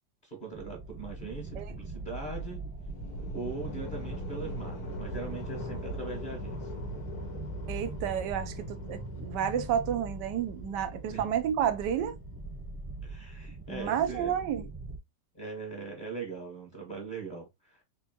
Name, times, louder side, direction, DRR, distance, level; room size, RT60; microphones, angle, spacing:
voice 1, 0.2-2.6 3.3-6.7 11.1-11.3 13.0-14.4 15.3-17.8, right 4 dB, 30° left, 1.5 m, -40 dB
sound 1, 0.5-15.0, right 3 dB, 15° right, 0.9 m, -42 dB
sound 2, 2.7-12.7, left 1 dB, 60° left, 1.6 m, -41 dB
voice 2, 7.7-12.2 13.7-14.7, right 9 dB, 80° right, 1.3 m, -30 dB
4.4 x 3.0 x 2.8 m
omnidirectional pair, 1.9 m